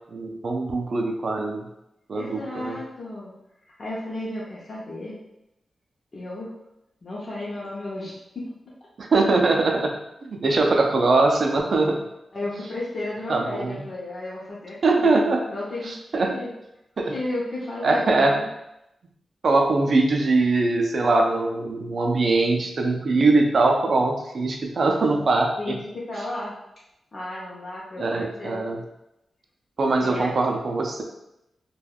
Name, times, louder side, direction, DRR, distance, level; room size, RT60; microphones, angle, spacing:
voice 1, 0.1-1.7 2.1-2.8 9.0-10.0 10.2-12.0 13.3-13.8 14.8-15.4 15.9-16.4 17.0-17.1 17.8-18.4 19.4-25.8 28.0-28.8 29.8-31.0, right 3 dB, 55° right, 2 dB, 0.4 m, -22 dB
voice 2, 2.1-3.3 3.8-5.2 6.1-6.5 7.0-8.5 12.3-16.5 17.0-18.5 25.6-26.5 27.1-28.7 30.0-30.3, left 1 dB, 45° left, -7 dB, 0.6 m, -33 dB
3.3 x 2.2 x 2.3 m, 0.87 s
wide cardioid pair, 125°, 0 cm